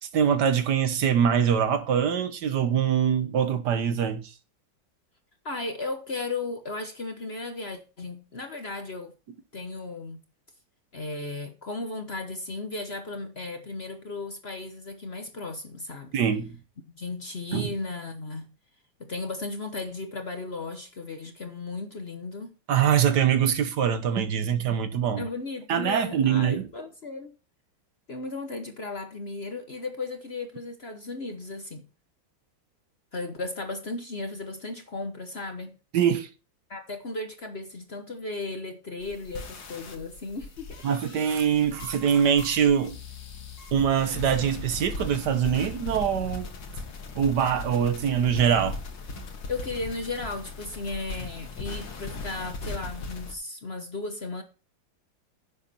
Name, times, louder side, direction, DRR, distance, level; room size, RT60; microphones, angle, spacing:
voice 1, 0.0-4.3 16.1-16.6 17.5-17.7 22.7-25.2 25.7-26.7 35.9-36.3 40.8-43.0 43.7-46.5 47.1-48.8, right 8 dB, 65° right, 1.5 m, -23 dB
voice 2, 5.4-9.1 9.5-10.2 10.9-16.1 17.0-18.5 19.0-22.6 25.2-27.3 28.1-31.8 33.1-35.8 36.7-40.8 49.5-54.4, left 3 dB, 40° left, 1.1 m, -35 dB
sound 1, 39.0-53.3, left 3 dB, 75° left, 2.3 m, -38 dB
10.5 x 7.4 x 4.2 m
omnidirectional pair, 2.1 m